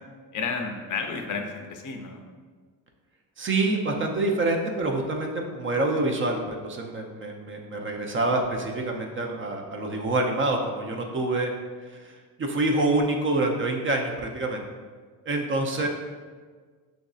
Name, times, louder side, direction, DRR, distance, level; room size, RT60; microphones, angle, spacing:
voice 1, 0.3-2.2 15.7-15.9, left 4 dB, 50° left, 3 dB, 0.6 m, -32 dB
voice 2, 3.4-11.5 11.9-12.0 12.4-14.6 15.3-15.9, right 2 dB, 35° right, 2 dB, 0.5 m, -26 dB
6.1 x 2.6 x 2.3 m, 1.5 s
cardioid pair, 95°, 38 cm